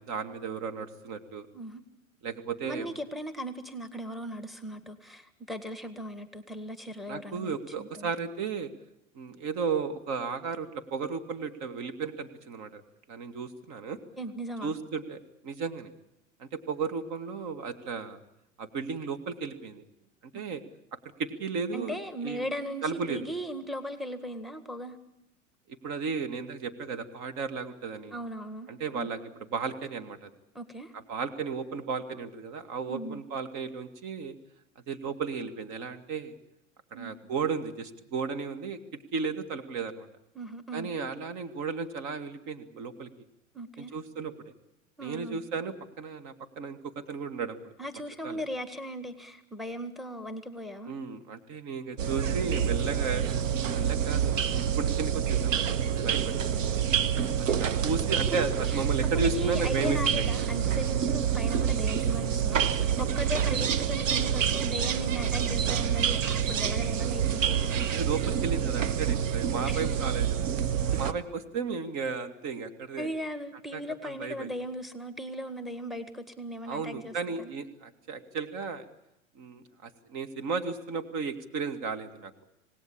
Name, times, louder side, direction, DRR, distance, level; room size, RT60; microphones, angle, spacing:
voice 1, 0.0-1.5 2.2-3.0 7.1-8.7 9.1-12.8 13.1-14.0 14.6-15.9 16.4-18.2 18.6-19.8 20.3-20.6 21.2-22.0 22.2-22.5 22.8-23.2 25.8-28.1 28.7-29.2 29.5-30.3 30.9-34.3 34.9-36.4 36.9-38.8 39.1-40.1 40.7-43.1 43.8-44.5 45.0-47.7 48.2-48.4 50.9-53.2 53.7-54.4 54.8-55.7 55.9-56.4 57.4-60.5 67.9-70.5 71.0-73.1 73.7-74.5 76.7-78.9 79.4-82.3, right 5 dB, 45° right, 8 dB, 2.2 m, -34 dB
voice 2, 2.6-8.1 14.2-14.7 21.7-25.0 28.1-29.1 30.5-30.9 32.9-33.2 36.9-37.2 40.3-40.9 43.5-43.9 45.0-45.4 47.8-51.0 53.6-53.8 57.5-57.6 58.3-58.8 59.1-67.6 69.7-69.8 73.0-77.5, equal, ahead, 9 dB, 1.7 m, -38 dB
sound 1, 52.0-71.1, right 8 dB, 75° right, 1.4 m, -27 dB
26.5 x 18.5 x 8.7 m, 0.87 s
hypercardioid pair, 95°, 38 cm